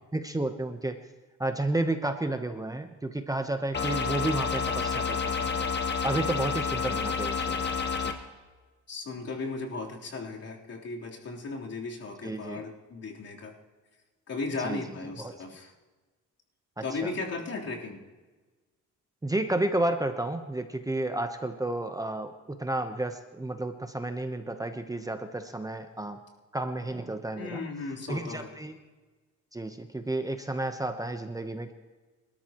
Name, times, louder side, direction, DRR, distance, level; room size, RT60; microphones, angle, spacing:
voice 1, 0.1-1.0 1.4-5.7 6.0-7.7 8.0-8.1 12.2-12.6 14.6-14.8 15.2-15.3 16.8-17.1 19.2-26.2 26.5-27.6 28.1-28.7 29.5-31.7, right 2 dB, 10° right, 7 dB, 1.0 m, -31 dB
sound 1, 3.7-8.1, left 5 dB, 35° left, 1.8 m, -29 dB
voice 2, 8.9-13.6 14.3-15.7 16.8-18.0 27.3-28.6, left 3 dB, 55° left, -2 dB, 3.8 m, -36 dB
26.0 x 13.0 x 3.1 m, 1.3 s
cardioid pair, 90°, 30 cm